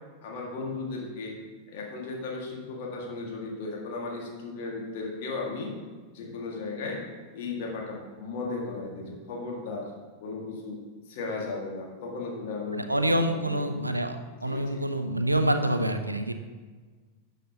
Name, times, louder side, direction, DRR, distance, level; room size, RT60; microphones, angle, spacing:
voice 1, 0.2-1.3 1.7-5.7 6.1-7.0 7.3-9.9 10.2-10.8 11.1-13.6 14.5-14.8, left 3 dB, 50° left, -1 dB, 2.0 m, -35 dB
voice 2, 12.7-16.3, right 1 dB, 85° right, 8 dB, 0.5 m, -27 dB
12.0 x 6.6 x 2.9 m, 1.4 s
figure-of-eight pair, 90°, 0 cm